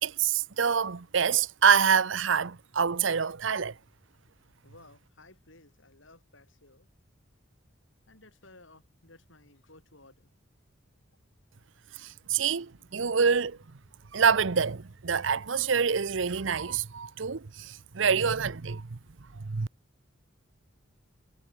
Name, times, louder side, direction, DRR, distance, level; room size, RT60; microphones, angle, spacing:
voice 1, 0.0-3.7 12.0-13.6 14.1-19.0 19.4-19.7, right 6 dB, 70° right, 0.7 m, -26 dB
voice 2, 4.6-6.9 8.1-10.3, left 2 dB, 70° left, 7.8 m, -56 dB
head